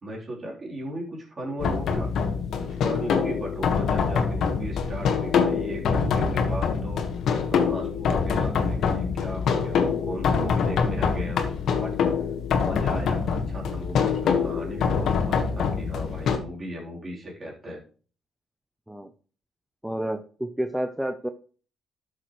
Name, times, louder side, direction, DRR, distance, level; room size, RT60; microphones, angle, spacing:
voice 1, 0.0-2.1 2.6-7.0 7.5-11.4 11.7-12.2 12.5-17.8, equal, 35° right, -2 dB, 3.7 m, -36 dB
sound 1, 1.6-16.4, left 6 dB, 70° left, 1.5 m, -25 dB
voice 2, 19.8-21.3, right 1 dB, 5° right, 8 dB, 0.7 m, -30 dB
12.5 x 6.5 x 3.2 m, 0.40 s
cardioid pair, 90°, 0 cm